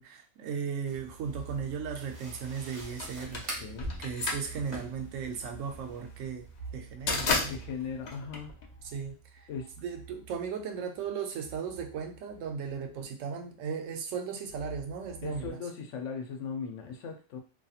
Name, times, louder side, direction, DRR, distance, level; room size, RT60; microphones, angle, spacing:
voice 1, 0.0-3.4 4.0-6.5 6.7-7.5 8.9-9.4 9.8-15.6, right 6 dB, 85° right, 4 dB, 1.0 m, -36 dB
sound 1, 0.8-11.1 11.4-13.3 14.5-15.5, right 5 dB, 55° right, 1.3 m, -49 dB
sound 2, 0.9-6.0, right 1 dB, 30° right, 0.7 m, -46 dB
sound 3, 3.0-9.1, left 3 dB, 55° left, 0.5 m, -33 dB
voice 2, 3.6-4.0 7.5-8.5 9.5-9.7 15.2-17.4, left 5 dB, 75° left, 4 dB, 0.9 m, -38 dB
2.7 x 2.7 x 2.4 m, 0.35 s
omnidirectional pair, 1.3 m